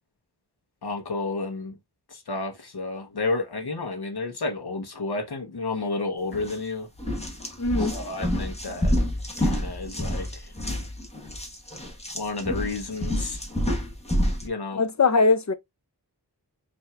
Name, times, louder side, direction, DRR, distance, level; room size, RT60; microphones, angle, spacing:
voice 1, 0.8-1.7 2.1-6.9 7.8-8.9 9.4-10.5 12.1-13.4 14.4-14.8, left 3 dB, 75° left, 1.0 m, -31 dB
sound 1, 6.3-6.6 7.0-14.5, equal, 15° left, 1.1 m, -28 dB
voice 2, 7.6-8.0 14.7-15.5, left 3 dB, 45° left, 0.6 m, -21 dB
5.6 x 2.7 x 2.3 m
wide cardioid pair, 65°, 39 cm